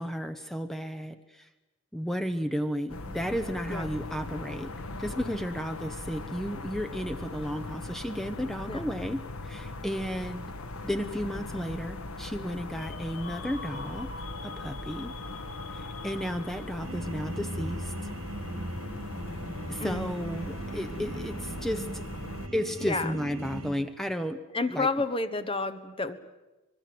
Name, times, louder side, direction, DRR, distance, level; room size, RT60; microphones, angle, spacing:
voice 1, 0.0-1.5 1.9-4.7 5.0-10.4 10.8-14.1 14.4-15.1 15.7-17.9 19.7-22.0 22.5-24.4 24.7-24.9, equal, ahead, 9 dB, 0.8 m, -33 dB
sound 1, 2.9-22.5, left 2 dB, 85° left, 1.3 m, -40 dB
sound 2, 12.7-16.9, left 4 dB, 65° left, 1.7 m, -44 dB
sound 3, 16.8-23.7, right 2 dB, 65° right, 4.6 m, -38 dB
voice 2, 19.8-20.1 22.8-23.2 24.5-26.2, left 3 dB, 25° left, 11 dB, 1.1 m, -30 dB
25.5 x 21.5 x 7.8 m, 1.0 s
head